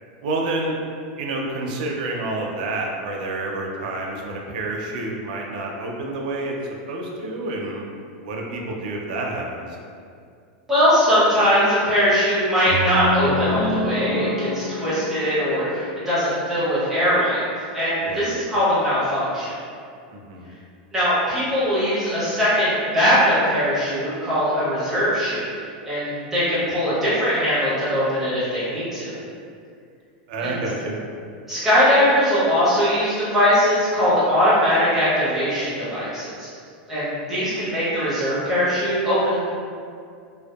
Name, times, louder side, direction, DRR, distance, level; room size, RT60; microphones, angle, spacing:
voice 1, 0.2-0.8 1.2-7.8 8.2-9.8 18.0-18.3 20.1-20.5 30.3-31.0, right 2 dB, 60° right, 0 dB, 0.4 m, -29 dB
voice 2, 10.7-17.4 17.7-19.6 20.9-25.4 25.8-29.2 30.4-30.6 31.5-36.5 36.9-39.5, equal, 5° right, -12 dB, 0.7 m, -21 dB
sound 1, 12.7-16.8, left 1 dB, 50° left, 0.5 m, -28 dB
2.6 x 2.1 x 2.2 m, 2.3 s
supercardioid pair, 170°, 5 cm